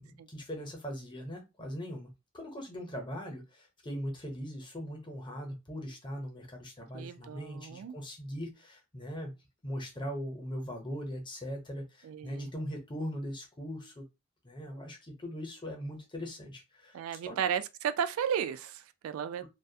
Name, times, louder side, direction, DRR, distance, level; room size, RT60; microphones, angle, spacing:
voice 1, 0.0-9.3 9.6-14.0 14.4-17.4, equal, 25° left, 0.7 m, -40 dB
voice 2, 6.9-7.9 12.0-12.5 16.9-19.5, right 8 dB, 80° right, 0.3 m, -34 dB
2.3 x 2.2 x 2.7 m
head